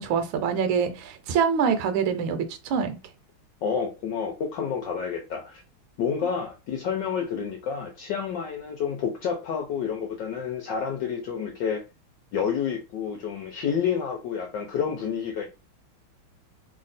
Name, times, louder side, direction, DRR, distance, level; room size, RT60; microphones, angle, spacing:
voice 1, 0.0-3.0, right 6 dB, 75° right, 1.4 m, -25 dB
voice 2, 3.6-5.6 6.0-11.8 12.3-15.4, left 7 dB, 70° left, 1.3 m, -29 dB
3.4 x 2.4 x 4.0 m
omnidirectional pair, 2.3 m